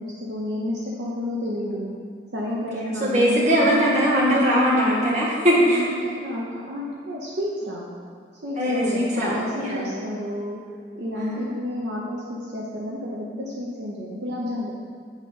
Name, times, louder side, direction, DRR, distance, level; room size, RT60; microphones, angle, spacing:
voice 1, 0.0-1.9 2.3-3.9 5.6-7.9 8.4-10.6 10.9-14.7, left 1 dB, 70° right, -4 dB, 0.9 m, -31 dB
voice 2, 2.5-5.9 8.6-9.9 11.1-11.4, equal, 40° right, -6 dB, 1.7 m, -21 dB
8.2 x 4.1 x 5.4 m, 2.1 s
head